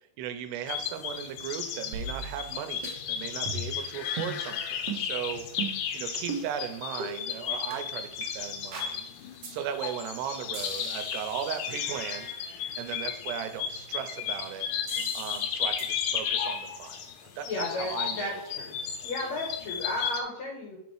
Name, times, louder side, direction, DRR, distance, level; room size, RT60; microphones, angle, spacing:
voice 1, 0.2-12.3 12.8-14.7 15.1-17.0 17.4-18.3, right 9 dB, 85° right, 8 dB, 2.8 m, -37 dB
sound 1, 0.7-20.2, left 8 dB, 85° left, 2.9 m, -34 dB
sound 2, 1.9-2.6 2.8-2.9 3.5-3.8 4.2-4.4 4.9-5.0 5.6-5.9 6.3-6.5 7.0-7.1 7.7-7.8 8.2-8.3 8.7-8.9 9.4-9.5 9.8-10.2 10.5-12.4 14.9-15.5 15.8-15.9, right 4 dB, 60° right, 1.7 m, -38 dB
voice 2, 17.5-17.9 18.2-18.8 19.0-20.8, left 2 dB, 65° left, -1 dB, 1.8 m, -33 dB
7.5 x 4.0 x 4.7 m, 0.72 s
omnidirectional pair, 4.7 m